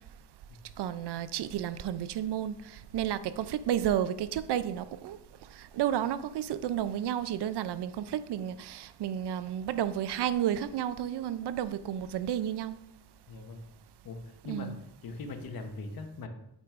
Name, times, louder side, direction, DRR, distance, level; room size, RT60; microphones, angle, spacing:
voice 1, 0.8-5.2 5.6-12.8 14.5-14.8, right 10 dB, 80° right, 0.5 m, -32 dB
voice 2, 13.3-13.6 14.0-14.7 15.0-16.3, left 3 dB, 60° left, 1.0 m, -40 dB
8.2 x 6.0 x 2.5 m
wide cardioid pair, 160°, 40 cm